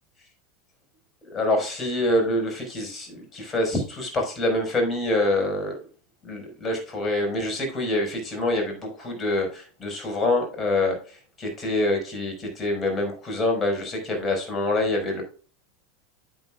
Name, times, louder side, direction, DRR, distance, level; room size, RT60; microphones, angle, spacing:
voice 1, 1.2-5.8 6.2-15.2, left 2 dB, 25° left, 3 dB, 5.4 m, -26 dB
10.5 x 8.7 x 2.4 m, 0.39 s
hypercardioid pair, 85°, 0 cm